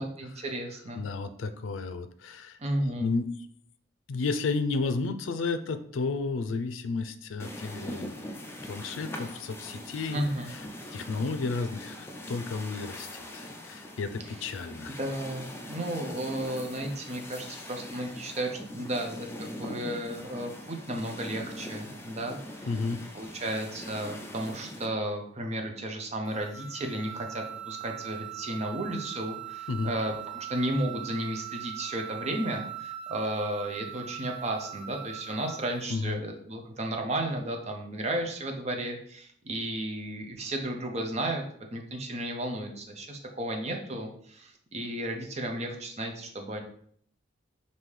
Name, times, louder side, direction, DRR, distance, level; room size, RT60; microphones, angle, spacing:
voice 1, 0.0-1.0 2.6-3.1 10.1-10.5 15.0-22.7 23.1-41.4 41.7-46.6, right 1 dB, 35° right, 2 dB, 0.6 m, -33 dB
voice 2, 0.9-2.6 3.0-3.3 4.1-8.1 8.6-10.2 10.5-10.7 10.9-15.0 17.5-17.6 22.6-23.0 29.7-29.9 35.9-36.2, left 4 dB, 90° left, 10 dB, 0.4 m, -32 dB
sound 1, 7.4-24.9, left 1 dB, 15° left, 0.4 m, -42 dB
sound 2, 26.2-35.8, right 12 dB, 65° right, 1.0 m, -41 dB
5.3 x 2.7 x 3.2 m, 0.63 s
head